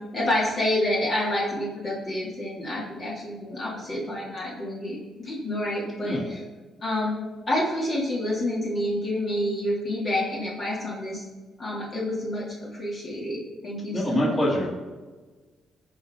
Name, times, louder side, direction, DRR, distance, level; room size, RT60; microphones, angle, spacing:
voice 1, 0.1-6.4 6.8-7.2 7.5-11.2 11.6-14.4, left 1 dB, 45° left, -5 dB, 2.9 m, -28 dB
voice 2, 13.9-14.7, equal, 25° left, -5 dB, 3.0 m, -24 dB
15.5 x 5.2 x 3.8 m, 1.3 s
cardioid pair, 90°, 0 cm